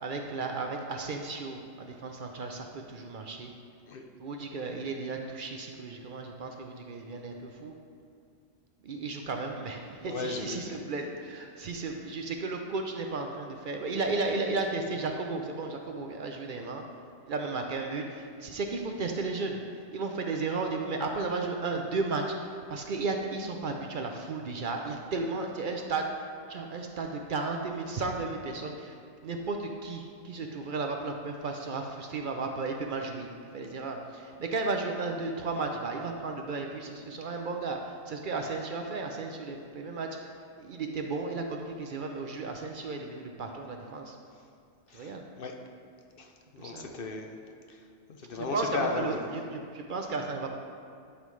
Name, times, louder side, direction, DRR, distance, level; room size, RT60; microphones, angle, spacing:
voice 1, 0.0-3.5 4.2-7.7 8.8-16.8 17.2-19.6 19.9-40.3 40.6-44.2 44.9-45.2 46.6-46.9 48.4-50.5, right 3 dB, 55° right, 3 dB, 0.7 m, -34 dB
voice 2, 10.1-10.8 16.6-16.7 44.9-45.6 46.2-47.4 47.7-49.4, left 3 dB, 60° left, 3 dB, 0.7 m, -36 dB
11.0 x 5.4 x 3.2 m, 2.3 s
omnidirectional pair, 1.2 m